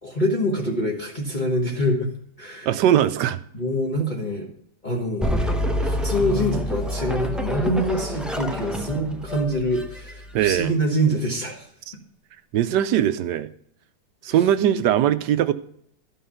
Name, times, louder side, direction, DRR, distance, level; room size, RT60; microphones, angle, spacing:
voice 1, 0.0-2.1 2.4-2.7 3.5-4.5 4.8-5.4 5.7-11.7 14.3-14.4, equal, 30° left, -2 dB, 1.4 m, -25 dB
voice 2, 2.7-3.4 10.3-10.7 12.5-13.5 14.2-15.5, right 10 dB, 80° right, 12 dB, 1.2 m, -20 dB
sound 1, 5.2-10.7, equal, ahead, 0.3 m, -27 dB
12.5 x 5.6 x 5.6 m, 0.68 s
omnidirectional pair, 1.9 m